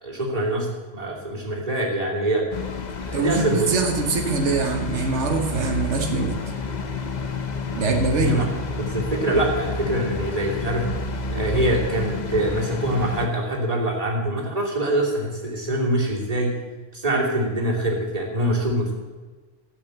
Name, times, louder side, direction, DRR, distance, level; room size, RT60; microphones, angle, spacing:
voice 1, 0.0-2.5 3.1-3.7 8.2-8.5 8.8-10.9 11.3-16.6 16.9-18.9, right 1 dB, 30° right, -3 dB, 2.9 m, -24 dB
sound 1, 2.5-13.3, left 3 dB, 40° left, 1.0 m, -30 dB
voice 2, 3.1-6.4 7.7-8.4, right 4 dB, 75° right, 3 dB, 1.6 m, -23 dB
12.5 x 8.5 x 7.8 m, 1.3 s
omnidirectional pair, 1.2 m